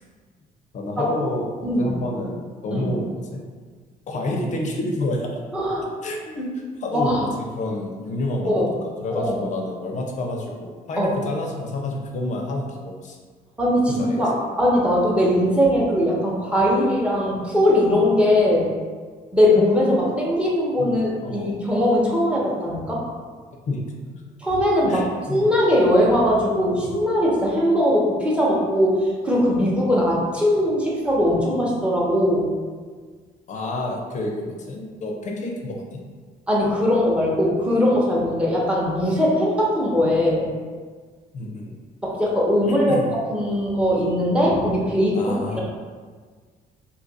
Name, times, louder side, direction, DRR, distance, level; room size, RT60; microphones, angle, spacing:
voice 1, 0.7-3.5 4.1-5.4 6.0-8.7 9.0-13.2 13.9-14.3 20.8-20.9 21.2-21.6 23.7-24.2 24.9-25.5 33.5-36.0 41.3-41.8 42.7-43.1 45.1-45.6, left 1 dB, 45° left, 0 dB, 0.6 m, -29 dB
voice 2, 1.6-1.9 2.7-2.9 5.5-5.9 6.9-7.2 8.4-8.7 9.1-9.5 11.0-11.1 13.6-14.3 14.6-18.7 19.3-23.0 24.4-25.0 25.3-29.0 29.2-32.5 36.5-40.5 42.0-43.0 43.3-45.6, left 1 dB, 5° right, -5 dB, 0.9 m, -20 dB
2.8 x 2.5 x 4.0 m, 1.5 s
cardioid pair, 110°, 17 cm